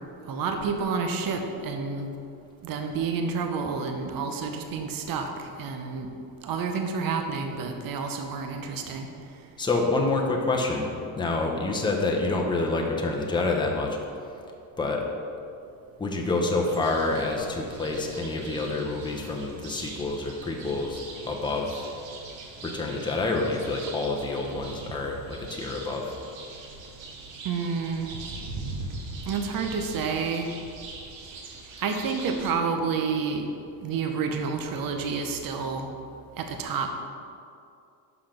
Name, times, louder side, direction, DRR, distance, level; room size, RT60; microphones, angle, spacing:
voice 1, 0.3-2.1 2.6-6.1 6.4-9.1 27.4-28.1 29.3-30.5 31.8-33.5 33.8-35.9 36.4-36.9, right 5 dB, 45° right, 4 dB, 0.8 m, -29 dB
voice 2, 9.6-10.9 11.2-14.0 14.8-15.0 16.0-21.9 22.6-26.2, left 3 dB, 10° left, 0 dB, 0.9 m, -27 dB
sound 1, 16.7-32.5, right 3 dB, 70° right, 1.2 m, -42 dB
6.0 x 5.6 x 5.1 m, 2.5 s
cardioid pair, 100°, 47 cm